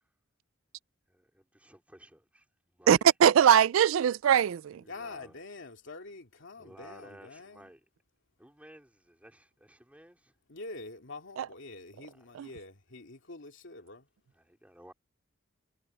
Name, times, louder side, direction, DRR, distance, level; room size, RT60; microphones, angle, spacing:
voice 1, 1.1-2.4 2.8-2.9 4.8-5.4 6.6-7.8 8.4-10.3 12.1-12.3 14.3-14.9, right 1 dB, 5° right, 3.4 m, -55 dB
voice 2, 2.9-4.8 11.4-11.5 12.3-12.5, right 9 dB, 75° right, 0.3 m, -22 dB
voice 3, 4.9-7.7 10.5-14.1, left 3 dB, 65° left, 2.8 m, -46 dB
head